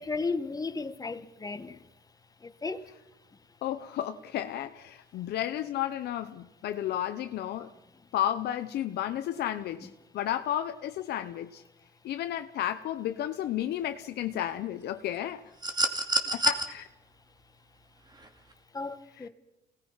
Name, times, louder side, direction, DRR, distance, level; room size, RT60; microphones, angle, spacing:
voice 1, 0.0-1.9 2.4-2.8 18.7-19.3, left 4 dB, 20° left, 1.4 m, -34 dB
voice 2, 3.6-7.7 8.1-9.9 10.1-11.6 12.0-15.4 16.3-16.9 19.2-19.3, left 11 dB, 75° left, 0.9 m, -32 dB
sound 1, 15.6-16.6 18.2-18.3, right 2 dB, 25° right, 2.5 m, -27 dB
28.0 x 18.5 x 5.7 m
cardioid pair, 100°, 17 cm